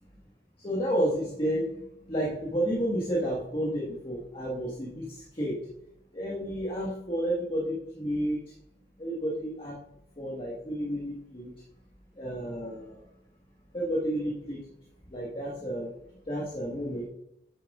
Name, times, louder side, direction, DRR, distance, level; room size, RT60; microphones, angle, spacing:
voice 1, 0.6-5.6 6.1-8.5 9.0-9.7 10.2-11.5 12.1-13.0 13.7-14.6 15.1-15.9 16.3-17.0, equal, 30° left, -4 dB, 1.5 m, -31 dB
9.5 x 7.2 x 2.4 m, 0.76 s
head